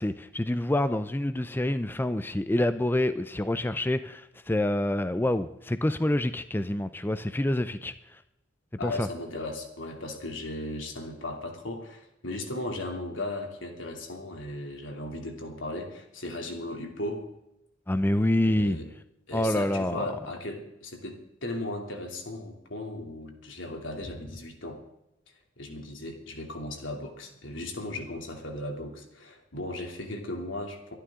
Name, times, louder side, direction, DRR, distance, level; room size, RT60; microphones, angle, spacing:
voice 1, 0.0-7.9 8.8-9.1 17.9-18.8 19.3-20.0, left 1 dB, 10° left, 12 dB, 0.5 m, -27 dB
voice 2, 8.8-17.3 18.4-18.9 19.3-24.8 25.6-30.9, left 1 dB, 85° left, 3 dB, 2.9 m, -36 dB
23.5 x 11.5 x 3.7 m, 0.84 s
head